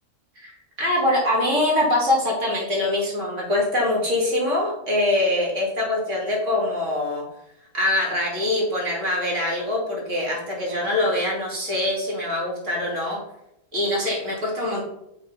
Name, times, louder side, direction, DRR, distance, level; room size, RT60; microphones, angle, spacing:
voice 1, 0.4-7.2 7.7-13.2 13.7-14.8, left 1 dB, 50° right, -4 dB, 2.8 m, -23 dB
6.1 x 4.5 x 5.4 m, 0.82 s
omnidirectional pair, 1.6 m